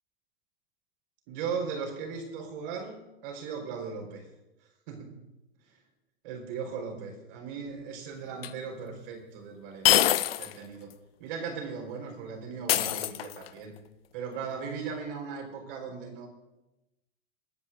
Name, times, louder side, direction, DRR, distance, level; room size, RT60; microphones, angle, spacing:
voice 1, 1.3-4.2 4.9-5.3 5.7-5.8 6.2-10.9 11.2-13.7 14.1-16.3, right 5 dB, 55° right, 1 dB, 4.4 m, -38 dB
sound 1, 8.4-8.5 9.8-10.6 10.9-11.0 12.7-13.6, left 13 dB, 65° left, 0.7 m, -24 dB
27.5 x 9.9 x 2.6 m, 0.98 s
figure-of-eight pair, 85°, 32 cm